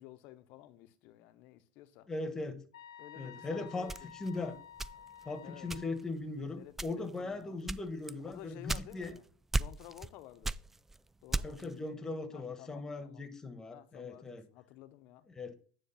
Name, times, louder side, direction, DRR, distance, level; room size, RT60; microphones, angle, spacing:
voice 1, 0.0-2.1 3.0-4.1 5.4-5.7 6.5-7.6 8.2-9.2 9.5-10.6 11.2-11.6 12.3-13.2 13.7-15.3, left 14 dB, 60° left, 0.8 m, -53 dB
voice 2, 2.1-2.6 3.2-4.6 5.2-9.1 11.4-14.4 15.4-15.5, left 3 dB, 20° left, 1.2 m, -39 dB
sound 1, 2.7-6.0, left 9 dB, 90° left, 0.9 m, -52 dB
sound 2, 3.9-5.3 5.7-6.2 6.7-7.2 7.7-9.2 9.5-10.1 10.4-11.7, right 2 dB, 10° right, 0.3 m, -36 dB
9.4 x 3.2 x 5.7 m
hypercardioid pair, 95°, 3 cm